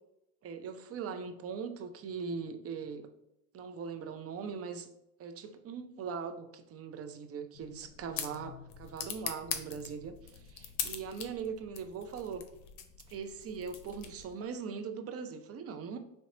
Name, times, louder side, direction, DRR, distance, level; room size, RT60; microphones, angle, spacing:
voice 1, 0.4-3.1 3.5-4.9 5.2-12.4 13.1-16.0, right 6 dB, 35° right, 7 dB, 0.4 m, -40 dB
sound 1, 7.5-14.4, left 8 dB, 75° left, 0.6 m, -42 dB
2.9 x 2.2 x 3.7 m, 0.85 s
hypercardioid pair, 70°, 44 cm